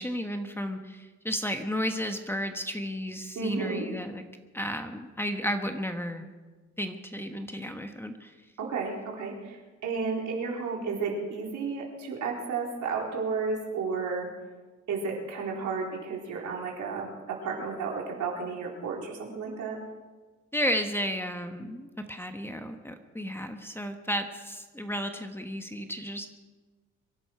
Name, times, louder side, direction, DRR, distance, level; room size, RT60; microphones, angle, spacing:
voice 1, 0.0-4.2 4.5-6.3 6.8-8.3 20.5-26.3, equal, 10° left, 6 dB, 1.3 m, -33 dB
voice 2, 3.4-3.9 8.6-14.3 14.9-19.8, right 4 dB, 75° right, -1 dB, 4.1 m, -32 dB
24.0 x 11.0 x 4.6 m, 1.3 s
cardioid pair, 90°, 30 cm